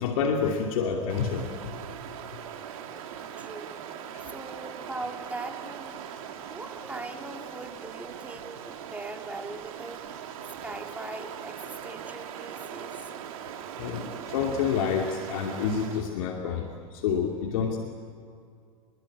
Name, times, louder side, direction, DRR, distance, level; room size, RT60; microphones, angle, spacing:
voice 1, 0.0-1.5 4.1-4.2 13.8-17.8, left 6 dB, 65° left, 1 dB, 2.7 m, -28 dB
Stream, 1.1-16.2, right 8 dB, 65° right, 2.6 m, -40 dB
voice 2, 3.4-3.8 4.2-6.0 6.5-10.1 10.6-13.1, right 2 dB, 10° right, 2 dB, 3.0 m, -40 dB
29.0 x 22.0 x 8.8 m, 2.3 s
hypercardioid pair, 105°, 19 cm